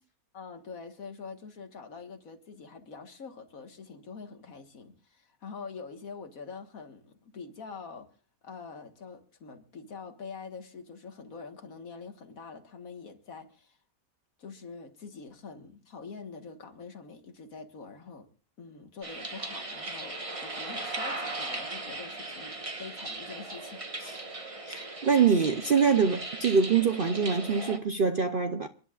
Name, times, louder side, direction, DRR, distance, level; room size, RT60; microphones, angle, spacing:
voice 1, 0.3-8.1 8.4-13.8 14.4-18.3 18.6-23.8 24.2-24.4, left 5 dB, 60° left, 2.0 m, -45 dB
sound 1, 19.0-27.8, right 2 dB, 20° right, 1.4 m, -38 dB
voice 2, 24.7-28.7, right 6 dB, 50° right, 0.7 m, -25 dB
30.0 x 11.0 x 2.4 m
omnidirectional pair, 1.6 m